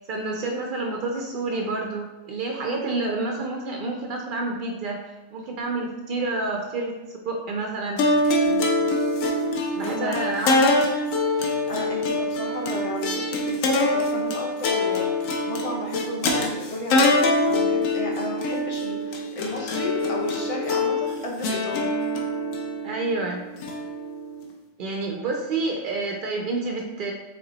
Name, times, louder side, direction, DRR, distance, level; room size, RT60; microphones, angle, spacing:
voice 1, 0.0-5.0 5.3-7.0 7.2-8.1 9.7-10.6 22.8-23.4 24.8-27.1, right 3 dB, 75° right, 1 dB, 0.4 m, -28 dB
sound 1, 8.0-24.4, left 2 dB, 75° left, 1.0 m, -24 dB
voice 2, 9.8-10.2 11.7-21.9, left 2 dB, 45° left, -1 dB, 0.4 m, -33 dB
5.3 x 2.2 x 3.9 m, 1.1 s
omnidirectional pair, 1.4 m